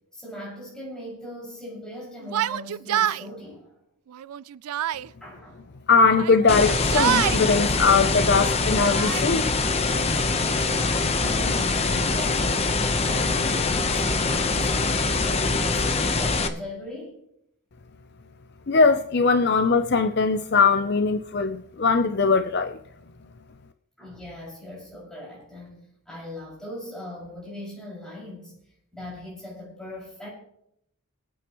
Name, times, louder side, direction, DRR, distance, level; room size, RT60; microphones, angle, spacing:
voice 1, 0.1-3.7 5.2-5.6 10.1-10.6 11.2-17.2 24.0-28.6 28.9-30.3, left 1 dB, 5° left, 5.9 m, -39 dB
Yell, 2.2-3.2 4.1-5.1 6.1-7.4 8.3-9.2, right 11 dB, 85° right, 0.4 m, -26 dB
voice 2, 5.9-9.5 18.7-22.8, left 4 dB, 50° left, 0.6 m, -20 dB
sound 1, 6.5-16.5, left 3 dB, 30° left, 0.9 m, -24 dB
24.5 x 9.1 x 3.1 m
head